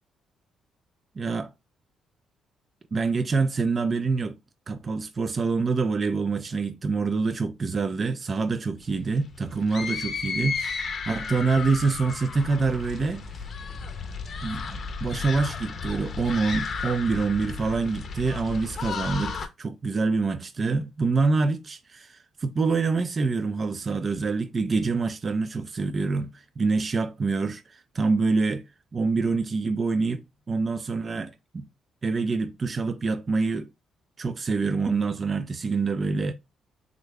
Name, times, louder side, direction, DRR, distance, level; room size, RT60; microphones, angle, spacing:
voice 1, 1.2-1.5 2.9-4.4 4.7-13.3 14.4-28.6 28.9-31.7 32.0-33.7 34.2-36.3, right 4 dB, 40° right, 0.3 m, -26 dB
sound 1, 8.8-19.5, left 5 dB, 50° left, 0.6 m, -34 dB
3.6 x 2.1 x 3.3 m
cardioid pair, 90°, 0 cm